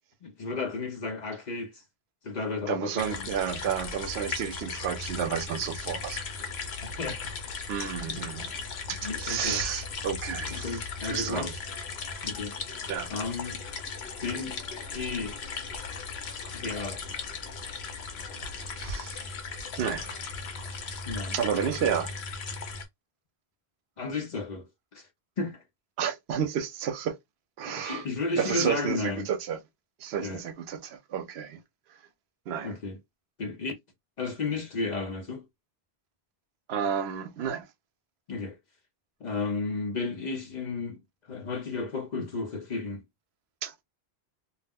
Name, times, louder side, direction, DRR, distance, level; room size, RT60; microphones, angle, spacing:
voice 1, 0.2-1.8 2.2-3.3 6.8-7.3 7.7-8.2 9.0-9.6 10.5-11.6 12.2-12.5 13.1-13.6 14.2-14.6 14.9-15.6 16.5-17.0 21.1-21.7 24.0-24.7 24.9-25.1 25.4-25.6 27.6-29.3 30.2-30.4 32.6-33.0 33.4-33.8 34.2-35.5 38.3-38.6 39.2-41.0 41.3-43.0, left 3 dB, 50° left, 0.6 m, -33 dB
voice 2, 2.7-6.2 7.7-11.5 12.9-13.1 18.6-19.3 19.8-20.2 21.3-22.1 26.0-27.2 27.6-28.0 28.4-29.6 30.0-31.6 31.9-32.0 32.5-32.7 36.7-37.7 43.6-43.8, right 8 dB, 80° right, 0.8 m, -31 dB
sound 1, 3.0-22.8, left 4 dB, 75° left, 0.9 m, -37 dB
2.3 x 2.0 x 3.4 m
omnidirectional pair, 1.1 m